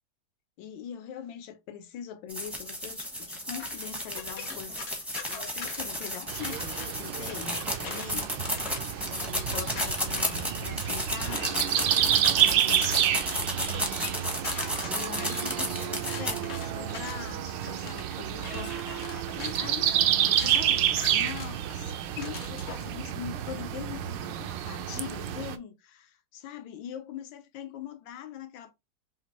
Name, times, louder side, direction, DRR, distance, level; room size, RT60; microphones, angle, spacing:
voice 1, 0.6-4.8 5.3-8.6 8.9-11.8 12.1-13.0 13.4-13.7 13.9-14.0 14.9-19.1 19.4-20.0 20.2-28.7, left 9 dB, 80° left, 1.5 m, -42 dB
sound 1, 2.3-16.4, equal, ahead, 0.5 m, -33 dB
sound 2, 3.6-6.9 7.3-22.9, left 6 dB, 50° left, 0.8 m, -43 dB
sound 3, 6.3-25.6, right 11 dB, 75° right, 1.2 m, -29 dB
5.1 x 2.9 x 2.8 m
omnidirectional pair, 2.1 m